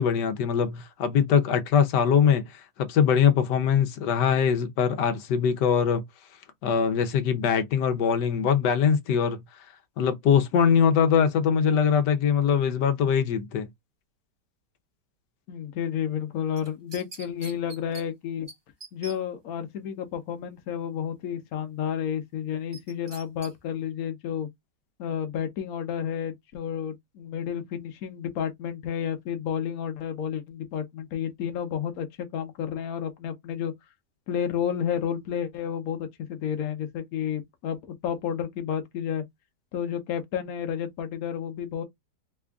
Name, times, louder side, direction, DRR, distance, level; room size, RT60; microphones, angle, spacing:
voice 1, 0.0-6.0 6.6-9.4 10.0-13.7, left 7 dB, 90° left, 1.4 m, -22 dB
voice 2, 15.5-18.5 18.9-24.5 25.0-33.7 34.3-39.2 39.7-41.8, left 8 dB, 65° left, 1.2 m, -31 dB
sound 1, 16.6-18.0 18.5-18.6 18.8-19.2 22.7-23.5 23.9-24.0, right 3 dB, 40° right, 0.3 m, -43 dB
3.4 x 2.4 x 3.4 m
omnidirectional pair, 1.8 m